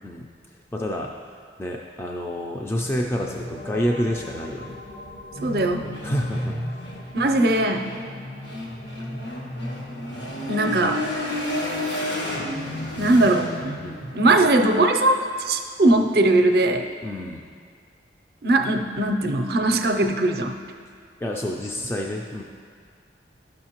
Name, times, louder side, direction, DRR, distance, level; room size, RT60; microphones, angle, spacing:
voice 1, 0.7-1.1 1.6-4.8 6.0-6.6 13.8-14.0 17.0-17.4 21.2-22.4, equal, 15° left, -1 dB, 0.3 m, -28 dB
sound 1, 2.8-12.4, left 1 dB, 65° left, 1.0 m, -43 dB
sound 2, 5.4-14.4, left 1 dB, 85° left, 1.5 m, -31 dB
voice 2, 5.4-5.9 7.1-7.9 10.5-11.0 13.0-13.7 14.1-16.9 18.4-20.6, right 2 dB, 55° right, 5 dB, 0.5 m, -20 dB
11.0 x 6.4 x 2.9 m, 2.1 s
head